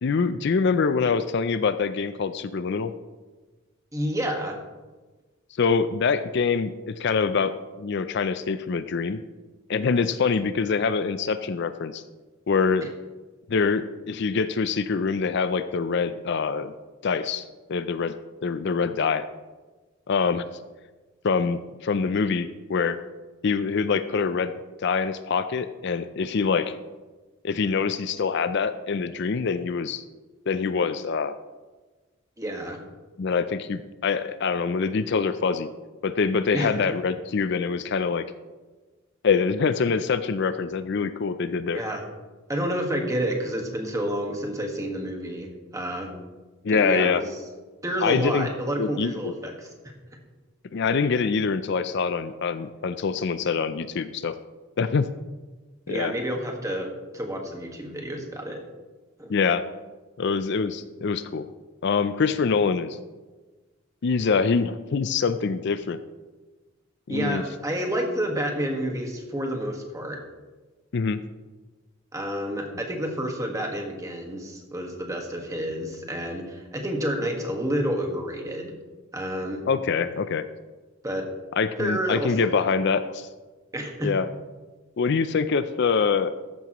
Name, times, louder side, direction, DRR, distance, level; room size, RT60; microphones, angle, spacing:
voice 1, 0.0-2.9 5.6-9.2 9.7-12.0 12.5-12.9 13.5-16.7 17.0-19.3 20.1-20.4 21.2-23.0 23.4-24.5 24.8-26.8 27.4-30.0 30.5-31.4 33.2-35.7 36.0-38.3 39.2-41.8 46.6-47.2 48.0-48.5 48.8-49.3 50.7-54.4 54.8-55.1 55.9-56.1 59.3-59.7 60.2-61.5 61.8-63.0 64.0-66.0 67.1-67.4 70.9-71.2 79.7-80.5 81.6-83.3 84.0-84.3 85.0-86.3, left 5 dB, 55° left, 12 dB, 0.4 m, -25 dB
voice 2, 3.9-4.6 12.8-12.9 32.4-32.8 36.5-36.8 41.7-42.0 42.5-46.1 46.7-47.2 47.8-49.7 55.9-58.6 59.2-59.3 67.1-70.2 72.1-78.7 79.1-79.6 81.0-81.2 81.8-82.3 83.7-84.1, equal, 15° right, 2 dB, 1.5 m, -29 dB
14.0 x 11.0 x 3.0 m, 1.2 s
head